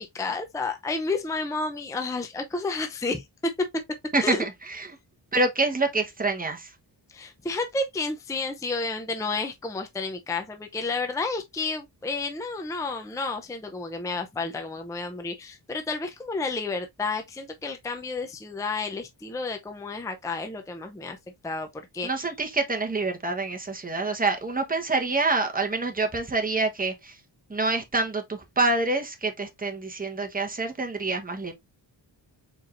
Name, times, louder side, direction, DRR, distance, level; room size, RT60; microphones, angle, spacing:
voice 1, 0.0-3.8 4.2-4.4 7.1-21.2 21.4-22.3, left 3 dB, 5° left, 0.5 m, -31 dB
voice 2, 4.1-4.9 5.3-6.7 22.0-27.2 27.5-31.5, right 3 dB, 20° right, 1.1 m, -26 dB
4.7 x 4.5 x 2.5 m
wide cardioid pair, 130°, 46 cm